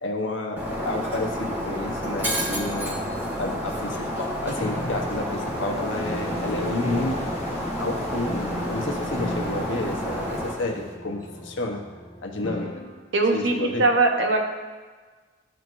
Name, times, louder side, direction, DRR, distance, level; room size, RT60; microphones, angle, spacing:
voice 1, 0.0-7.3 7.8-11.8 12.2-12.8 13.3-13.8, left 2 dB, 80° left, 1 dB, 1.0 m, -30 dB
Shatter, 0.6-10.5, equal, 10° right, 1.2 m, -30 dB
sound 1, 2.6-11.0, left 1 dB, 35° left, 0.9 m, -43 dB
sound 2, 4.5-13.0, left 1 dB, 15° left, 1.4 m, -36 dB
voice 2, 13.1-14.4, right 3 dB, 70° right, 2 dB, 1.0 m, -21 dB
13.0 x 4.5 x 2.6 m, 1.4 s
head